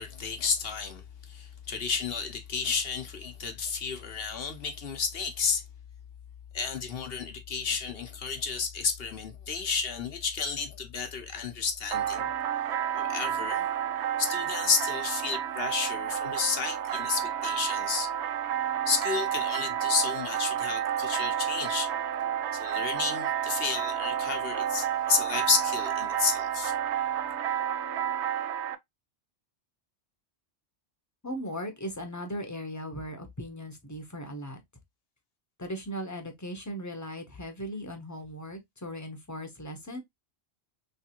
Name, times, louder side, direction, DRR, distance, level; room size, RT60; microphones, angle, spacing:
voice 1, 0.0-5.6 6.5-12.3 13.0-13.7 14.2-18.1 18.9-21.9 22.5-26.7, left 5 dB, 60° left, 1.0 m, -31 dB
sound 1, 11.9-28.8, right 9 dB, 80° right, 0.9 m, -30 dB
voice 2, 31.2-34.6 35.6-40.0, equal, 15° left, 0.8 m, -38 dB
3.3 x 3.2 x 2.9 m
omnidirectional pair, 1.1 m